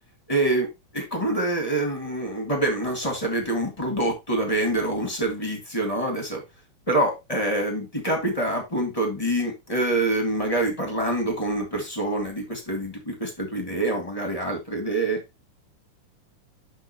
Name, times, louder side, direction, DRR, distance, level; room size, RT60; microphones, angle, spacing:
voice 1, 0.3-0.7 0.9-6.4 6.9-15.2, right 1 dB, 15° left, 1.4 m, -26 dB
11.0 x 4.4 x 3.0 m
omnidirectional pair, 3.7 m